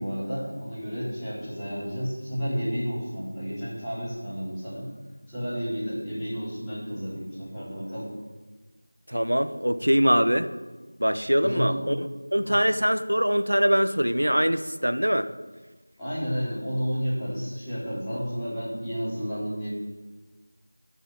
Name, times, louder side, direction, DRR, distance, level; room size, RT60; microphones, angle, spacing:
voice 1, 0.0-4.9 5.3-8.1 11.4-11.8 12.4-12.6 16.0-19.7, equal, 5° left, -17 dB, 4.3 m, -31 dB
voice 2, 9.1-10.5 11.0-12.1 12.3-15.3, equal, 90° right, 10 dB, 1.2 m, -23 dB
13.0 x 7.5 x 8.7 m, 1.2 s
figure-of-eight pair, 170°, 0 cm